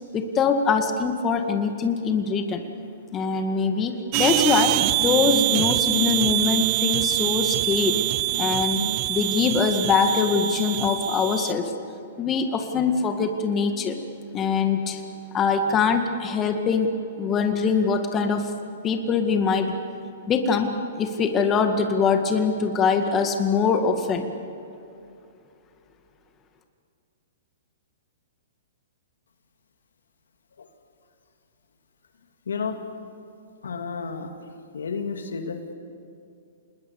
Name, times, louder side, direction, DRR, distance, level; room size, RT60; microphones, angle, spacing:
voice 1, 0.1-2.6 3.1-8.0 8.4-11.7 12.2-14.0 14.3-15.0 15.3-16.9 17.2-18.6 18.8-19.7 20.3-24.3, left 5 dB, 25° left, 6 dB, 1.9 m, -23 dB
sound 1, 4.1-11.5, right 20 dB, 40° right, 0.6 m, -24 dB
voice 2, 32.5-32.8 33.6-34.3 34.7-35.7, left 5 dB, 85° left, 6 dB, 2.3 m, -31 dB
26.5 x 20.5 x 7.1 m, 2.6 s
hypercardioid pair, 130°, 0 cm